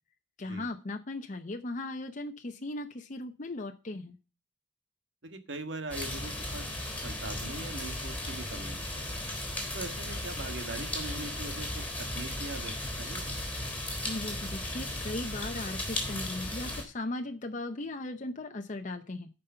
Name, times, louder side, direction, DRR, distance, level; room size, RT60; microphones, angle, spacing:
voice 1, 0.4-4.2 14.0-19.3, left 2 dB, 45° left, 5 dB, 0.7 m, -37 dB
voice 2, 5.2-6.7 7.0-9.1 9.7-13.4, right 2 dB, 80° right, 8 dB, 1.7 m, -41 dB
sound 1, 5.9-16.8, left 1 dB, 10° left, 3.7 m, -36 dB
12.5 x 5.4 x 5.5 m, 0.32 s
head